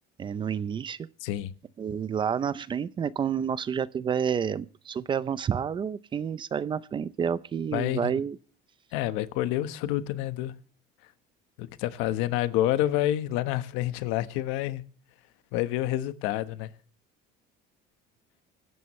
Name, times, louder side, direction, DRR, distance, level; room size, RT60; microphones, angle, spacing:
voice 1, 0.2-1.0 1.8-8.4, right 7 dB, 25° right, 0.6 m, -29 dB
voice 2, 1.2-1.5 7.7-8.1 8.9-10.5 11.6-14.8 15.5-16.7, left 14 dB, 85° left, 1.3 m, -28 dB
24.5 x 12.5 x 3.2 m
cardioid pair, 155°, 20 cm